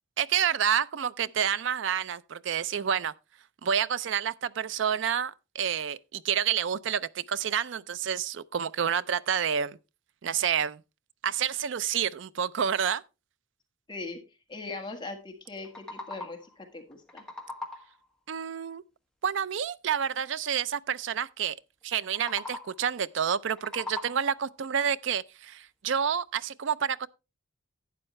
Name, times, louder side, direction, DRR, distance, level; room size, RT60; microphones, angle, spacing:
voice 1, 0.2-3.1 3.6-9.8 10.2-10.8 11.2-13.0 18.3-18.8 19.2-21.6 21.8-27.1, right 8 dB, 65° right, 0.4 m, -29 dB
voice 2, 13.9-14.2 14.5-17.2, left 3 dB, 20° left, 1.6 m, -40 dB
sound 1, 15.4-16.6 16.9-18.1 22.0-22.9 23.4-24.5, left 2 dB, 5° left, 1.3 m, -41 dB
11.5 x 8.8 x 3.1 m
head